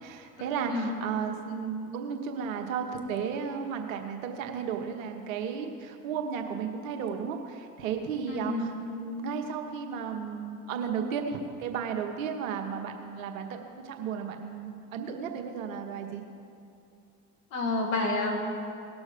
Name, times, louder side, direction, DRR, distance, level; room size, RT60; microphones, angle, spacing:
voice 1, 0.0-16.2, right 6 dB, 80° right, 4 dB, 1.2 m, -34 dB
voice 2, 8.3-8.6 17.5-18.4, left 2 dB, 80° left, 1 dB, 2.0 m, -29 dB
18.5 x 6.2 x 5.1 m, 2.6 s
hypercardioid pair, 65°, 40 cm